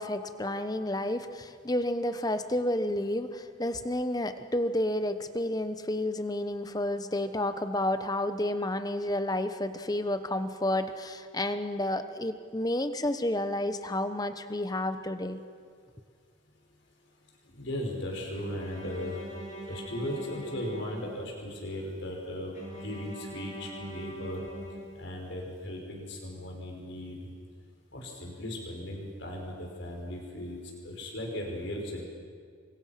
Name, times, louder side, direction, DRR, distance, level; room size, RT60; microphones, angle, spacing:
voice 1, 0.0-15.4, left 1 dB, 20° left, 10 dB, 1.0 m, -30 dB
voice 2, 17.5-19.2 19.7-24.4 24.9-27.2 27.9-32.0, left 1 dB, 60° left, 0 dB, 5.6 m, -37 dB
Bowed string instrument, 18.3-21.5 22.5-25.5, right 1 dB, 35° left, 6.2 m, -43 dB
29.5 x 24.5 x 6.0 m, 2.1 s
head